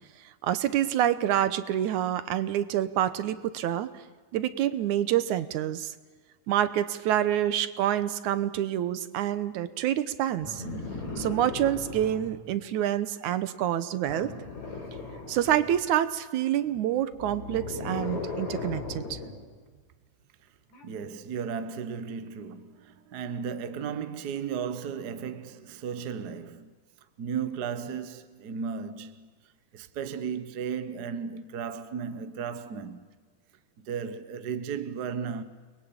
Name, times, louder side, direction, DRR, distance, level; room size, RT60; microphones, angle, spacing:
voice 1, 0.4-3.9 4.3-5.9 6.5-10.6 11.2-14.3 15.3-19.2, right 11 dB, 75° right, 2.3 m, -27 dB
sound 1, 10.4-12.4 14.1-15.8 17.1-19.4 20.7-20.8, left 3 dB, 60° left, 5.3 m, -37 dB
voice 2, 20.8-26.7 27.2-29.3 29.7-33.0 33.8-35.4, right 6 dB, 55° right, 1.1 m, -35 dB
29.5 x 21.5 x 8.8 m
omnidirectional pair, 3.6 m